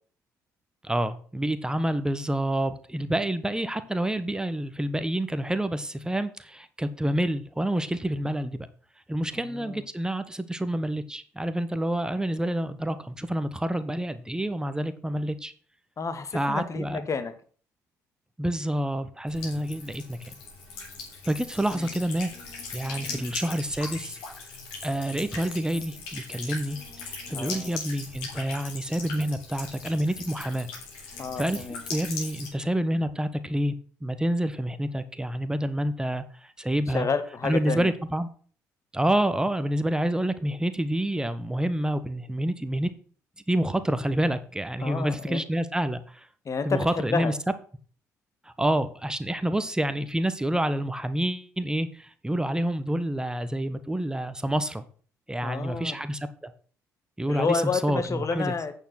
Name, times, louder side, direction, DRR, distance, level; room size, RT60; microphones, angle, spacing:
voice 1, 0.8-8.7 9.1-15.5 16.3-17.1 18.4-20.3 21.2-22.3 22.7-24.2 24.8-26.8 27.0-30.7 31.4-33.7 34.0-37.1 37.4-38.3 38.9-42.9 43.5-46.3 46.6-47.3 48.4-54.8 55.3-56.5 57.2-58.5, right 1 dB, 10° right, 12 dB, 1.3 m, -28 dB
voice 2, 9.3-9.8 16.0-17.3 21.7-21.9 23.0-23.3 27.3-27.7 31.2-31.8 36.9-37.9 44.8-45.4 46.4-47.3 55.4-56.0 57.3-58.7, left 5 dB, 40° left, 11 dB, 1.6 m, -30 dB
Buzz / Water tap faucet / Trickle dribble, 19.3-32.5, left 4 dB, 70° left, 3.8 m, -39 dB
9.0 x 7.2 x 6.0 m, 0.44 s
figure-of-eight pair, 45°, 9 cm